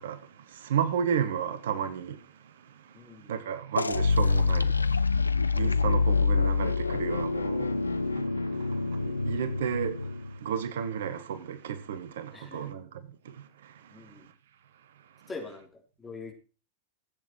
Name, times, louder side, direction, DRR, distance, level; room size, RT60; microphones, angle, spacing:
voice 1, 0.0-14.3 15.0-15.3, right 8 dB, 60° right, 0.9 m, -34 dB
voice 2, 2.9-3.3 12.3-12.7 13.9-14.3 15.3-16.3, left 4 dB, 15° left, 3.2 m, -44 dB
sound 1, 3.8-10.4, left 4 dB, 80° left, 0.5 m, -26 dB
15.0 x 8.0 x 4.5 m
figure-of-eight pair, 90°, 0 cm